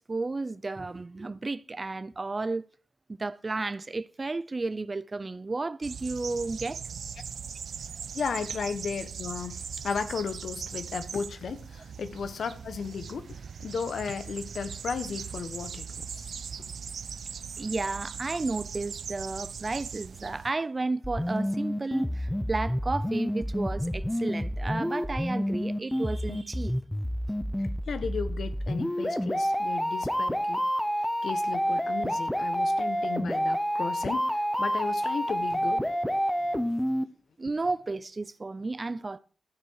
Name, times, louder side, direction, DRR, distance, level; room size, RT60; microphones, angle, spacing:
voice 1, 0.0-2.7 3.2-6.8 10.8-10.9 17.6-26.7 37.4-39.2, right 3 dB, 30° right, 0.6 m, -32 dB
sound 1, 5.8-20.5, right 6 dB, 85° right, 0.5 m, -40 dB
voice 2, 8.1-16.3 27.9-30.6 31.2-35.8 36.5-36.6, left 5 dB, 85° left, 1.3 m, -35 dB
sound 2, 21.0-37.0, equal, 5° left, 0.9 m, -29 dB
14.0 x 9.2 x 4.8 m
wide cardioid pair, 110°, 0 cm